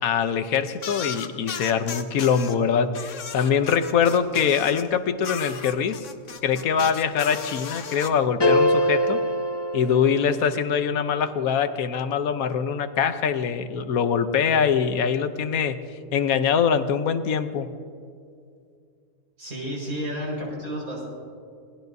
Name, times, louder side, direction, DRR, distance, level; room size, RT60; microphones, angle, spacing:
voice 1, 0.0-6.1 6.4-9.2 9.7-15.8 16.1-17.7, left 7 dB, 80° left, 10 dB, 1.3 m, -23 dB
sound 1, 0.8-2.5 2.9-4.9 5.2-8.1, left 6 dB, 60° left, 1.3 m, -35 dB
sound 2, 8.4-10.7, left 1 dB, 45° left, 0.3 m, -23 dB
voice 2, 19.4-21.1, equal, 80° right, -3 dB, 5.7 m, -31 dB
27.5 x 18.5 x 2.7 m, 2.3 s
omnidirectional pair, 1.5 m